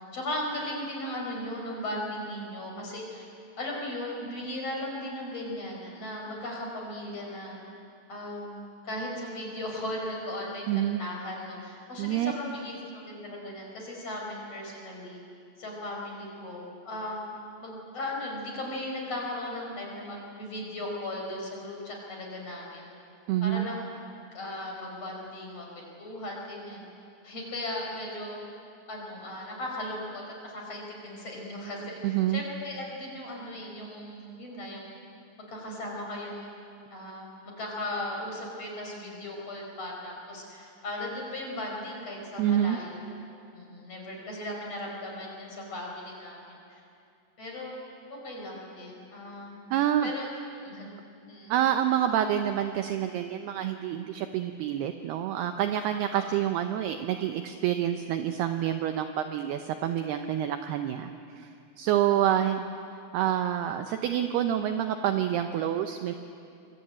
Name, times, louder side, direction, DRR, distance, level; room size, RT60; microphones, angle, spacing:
voice 1, 0.1-3.3 3.6-7.6 8.1-15.2 15.6-17.4 17.6-22.9 23.4-23.8 24.3-25.7 26.0-26.8 27.2-28.4 28.9-34.9 35.5-36.5 36.9-46.8 47.4-47.7 48.2-49.6 50.0-50.3 50.6-50.9 51.3-51.5 56.1-56.3 62.1-62.4, left 1 dB, 30° left, -1 dB, 5.9 m, -37 dB
voice 2, 10.7-11.0 12.0-12.3 23.3-23.7 32.0-32.4 42.4-42.8 49.7-50.1 51.5-61.1 61.4-61.5 61.8-62.7 63.1-66.1, right 11 dB, 85° right, 7 dB, 2.3 m, -27 dB
25.5 x 23.5 x 8.8 m, 2.5 s
omnidirectional pair, 5.8 m